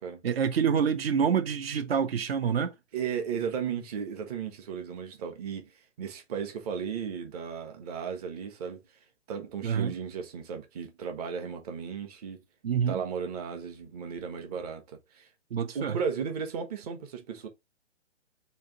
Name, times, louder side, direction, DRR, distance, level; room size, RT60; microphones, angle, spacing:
voice 1, 0.2-2.7 9.6-9.9 12.6-13.0 15.5-16.0, right 7 dB, 55° right, 0.7 m, -27 dB
voice 2, 2.9-5.7 6.0-8.8 9.3-12.4 12.9-15.3 15.7-17.5, right 7 dB, 35° right, 1.0 m, -35 dB
3.3 x 2.7 x 3.8 m
hypercardioid pair, 145°, 36 cm